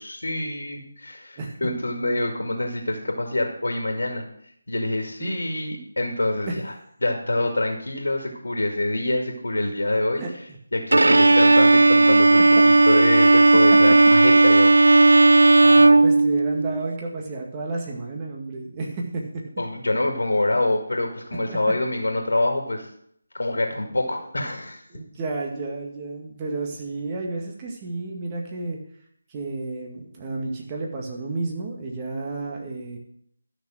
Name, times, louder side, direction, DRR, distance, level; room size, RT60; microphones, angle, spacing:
voice 1, 0.0-4.3 4.7-6.7 7.0-10.2 10.7-14.7 19.6-22.9 23.3-24.8, left 1 dB, 70° left, 2 dB, 2.2 m, -26 dB
Bowed string instrument, 10.9-16.8, right 2 dB, 70° right, 0.4 m, -14 dB
voice 2, 15.6-19.4 21.5-21.6 24.9-28.8 29.3-33.0, right 3 dB, 20° right, 0 dB, 2.0 m, -32 dB
13.0 x 6.3 x 6.4 m, 0.71 s
figure-of-eight pair, 155°, 0 cm